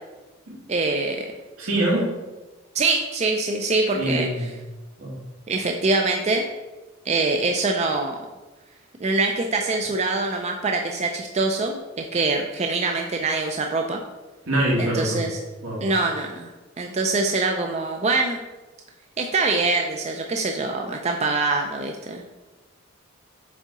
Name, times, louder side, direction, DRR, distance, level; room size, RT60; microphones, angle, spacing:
voice 1, 0.7-1.3 2.7-4.3 5.5-6.4 7.1-8.2 9.0-14.0 14.8-15.4 15.8-16.5 16.8-18.4 19.2-22.2, right 3 dB, 30° right, 3 dB, 0.4 m, -24 dB
voice 2, 1.6-2.1 3.9-4.5 5.0-5.2 14.5-15.3 15.6-15.9, right 1 dB, 80° right, -3 dB, 2.0 m, -24 dB
7.5 x 3.6 x 4.0 m, 1.1 s
head